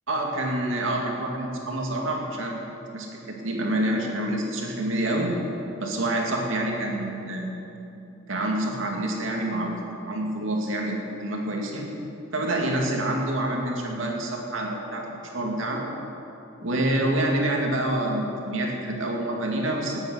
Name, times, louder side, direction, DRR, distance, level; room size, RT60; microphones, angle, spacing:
voice 1, 0.1-2.6 2.9-5.3 5.8-7.5 8.3-9.8 10.1-11.9 12.3-15.8 16.6-20.0, right 1 dB, 85° right, 0 dB, 2.4 m, -27 dB
19.0 x 8.8 x 6.4 m, 2.8 s
head